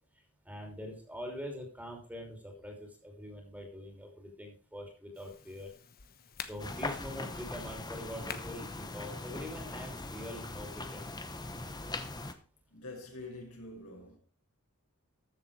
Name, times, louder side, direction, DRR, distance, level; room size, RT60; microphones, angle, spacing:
voice 1, 0.4-5.7 6.4-11.2, equal, 5° right, 3.1 m, -44 dB
sound 1, 5.1-11.8, left 7 dB, 45° left, 1.1 m, -51 dB
sound 2, 6.6-12.3, left 2 dB, 20° left, 1.1 m, -41 dB
voice 2, 12.7-14.2, left 2 dB, 75° left, 5.6 m, -46 dB
14.0 x 7.2 x 4.9 m
head